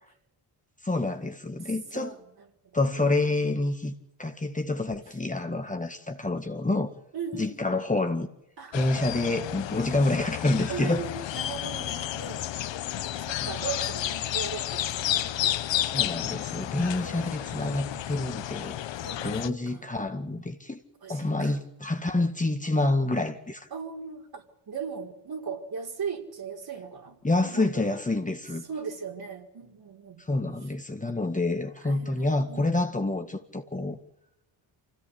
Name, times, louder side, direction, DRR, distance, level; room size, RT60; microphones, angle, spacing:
voice 1, 0.8-2.2 2.7-3.9 4.2-6.9 7.3-8.3 8.7-11.1 13.4-13.6 15.9-18.8 19.2-20.8 21.1-23.7 27.2-28.6 30.3-34.0, left 2 dB, 15° left, 2.0 m, -28 dB
voice 2, 7.1-7.8 8.6-8.8 10.7-12.5 13.2-15.3 17.0-17.6 19.0-19.8 21.0-21.6 23.7-27.9 28.7-30.2 31.8-32.6, right 6 dB, 50° right, 5.0 m, -38 dB
sound 1, 8.7-19.5, left 12 dB, 75° left, 1.1 m, -31 dB
26.0 x 16.5 x 8.7 m
cardioid pair, 90°, 46 cm